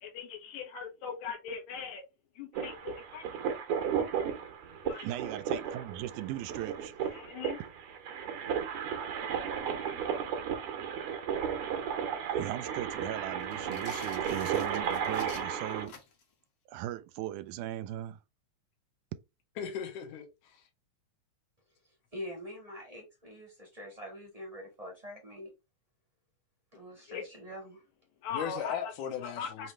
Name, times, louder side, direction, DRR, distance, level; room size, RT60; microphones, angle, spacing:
voice 1, 0.0-2.0 2.4-3.3 4.8-5.1 7.1-7.6 27.1-27.2 28.2-28.9 29.4-29.7, left 6 dB, 70° left, 2.3 m, -40 dB
sound 1, 2.5-15.9, right 8 dB, 60° right, 1.6 m, -34 dB
voice 2, 5.0-6.9 12.4-16.0 16.7-18.2, right 13 dB, 85° right, 2.0 m, -38 dB
sound 2, 13.4-16.3, left 5 dB, 55° left, 1.8 m, -50 dB
voice 3, 19.6-20.6 28.3-29.7, left 8 dB, 85° left, 2.5 m, -37 dB
voice 4, 22.1-25.5 26.7-27.8, equal, 20° right, 0.9 m, -44 dB
5.4 x 3.0 x 3.2 m
omnidirectional pair, 3.5 m